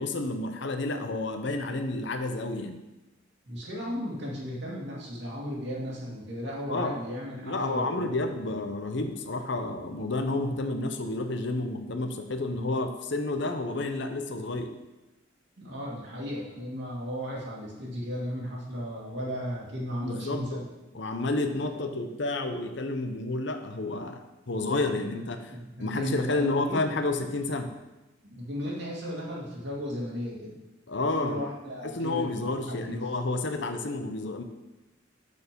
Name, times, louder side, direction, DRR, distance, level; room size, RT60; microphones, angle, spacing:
voice 1, 0.0-2.8 6.7-6.9 7.4-14.7 20.0-20.6 20.9-24.2 24.5-27.7 30.9-31.4 31.8-34.4, left 2 dB, 60° left, 7 dB, 0.8 m, -30 dB
voice 2, 3.5-8.2 15.6-20.7 21.6-21.8 24.6-25.2 25.5-26.9 28.2-30.6 31.1-33.0, equal, 60° right, -4 dB, 2.4 m, -35 dB
6.8 x 6.5 x 5.3 m, 1.0 s
head